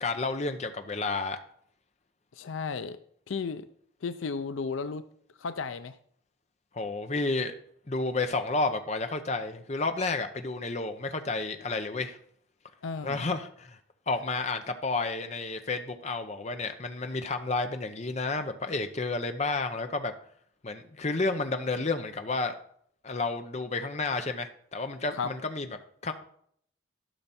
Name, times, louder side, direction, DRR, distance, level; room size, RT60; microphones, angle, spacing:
voice 1, 0.0-1.4 6.7-7.5 7.9-12.2 13.0-13.8 14.1-20.1 20.6-22.6 23.0-25.7 26.0-26.1, left 3 dB, 35° left, 0.7 m, -31 dB
voice 2, 2.4-3.0 3.3-3.7 4.0-5.0 5.4-5.9 12.8-13.3 25.1-25.3, left 5 dB, 80° left, 0.5 m, -34 dB
12.0 x 5.8 x 4.2 m
head